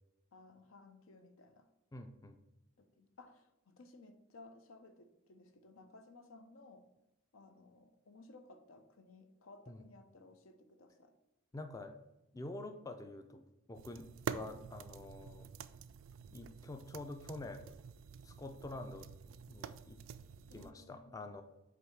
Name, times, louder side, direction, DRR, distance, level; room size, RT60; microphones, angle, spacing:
voice 1, 0.3-1.7 2.8-6.9 7.3-11.1 20.5-21.1, left 2 dB, 80° left, 7 dB, 0.7 m, -58 dB
voice 2, 1.9-2.4 9.7-9.8 11.5-12.0 12.3-13.4 13.7-15.5 16.3-17.7 18.2-20.0 20.5-21.4, left 2 dB, 15° left, 7 dB, 0.3 m, -47 dB
sound 1, 13.7-20.7, right 7 dB, 70° right, 0.3 m, -48 dB
7.7 x 2.8 x 4.6 m, 0.94 s
head